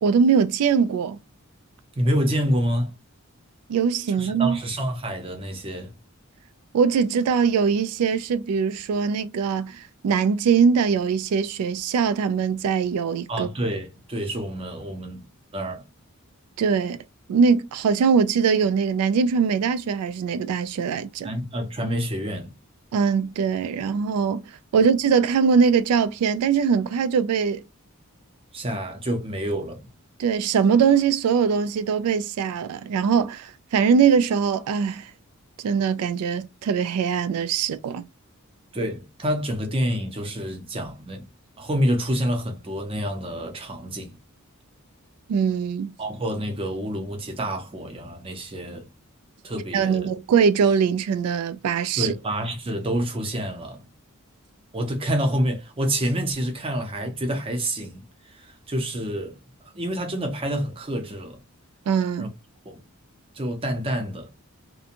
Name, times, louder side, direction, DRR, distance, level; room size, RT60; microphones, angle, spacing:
voice 1, 0.0-1.2 3.7-4.6 6.7-13.5 16.6-17.0 17.3-21.3 22.9-24.4 24.7-27.6 30.2-35.1 35.6-38.0 45.3-45.9 49.7-52.1 61.9-62.3, right 6 dB, 85° right, 0.3 m, -22 dB
voice 2, 1.9-2.9 4.1-5.9 13.3-15.2 15.5-15.8 21.2-22.5 24.7-24.8 28.5-29.8 38.7-41.3 41.6-44.2 46.0-48.9 49.4-50.1 52.0-53.8 54.7-59.4 59.6-61.4 62.2-62.3 62.7-62.8 63.3-64.3, equal, 25° right, 0.6 m, -28 dB
2.5 x 2.2 x 2.8 m
head